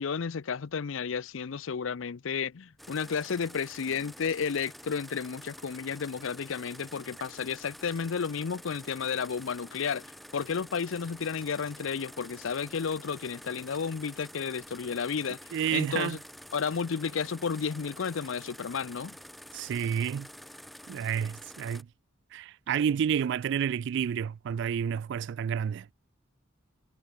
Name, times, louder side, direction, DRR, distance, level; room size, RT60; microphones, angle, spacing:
voice 1, 0.0-15.4 15.7-16.2 16.5-19.2, left 6 dB, 65° left, 0.5 m, -32 dB
sound 1, 2.8-21.8, equal, ahead, 0.6 m, -48 dB
voice 2, 15.5-16.2 19.5-20.3 20.9-21.9 22.3-25.9, right 8 dB, 60° right, 0.3 m, -30 dB
head